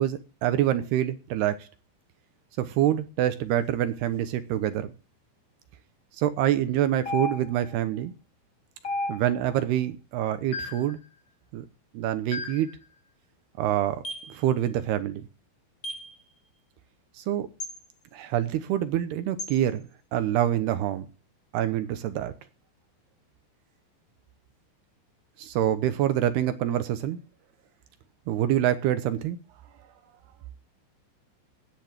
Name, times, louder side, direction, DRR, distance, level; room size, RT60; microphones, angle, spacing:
voice 1, 0.0-1.7 2.6-4.9 6.2-8.1 9.1-11.0 11.5-11.7 11.9-12.7 13.6-15.2 17.2-17.5 18.1-19.8 20.1-21.1 21.5-22.3 25.4-27.2 28.3-29.4, right 12 dB, 75° right, 2.8 m, -26 dB
sound 1, 7.1-7.7 8.8-9.5 10.5-10.9 12.3-12.7 14.0-14.3 15.8-16.1 17.6-17.8 19.4-19.6, left 2 dB, 40° left, 1.2 m, -33 dB
13.5 x 10.0 x 7.5 m
omnidirectional pair, 5.3 m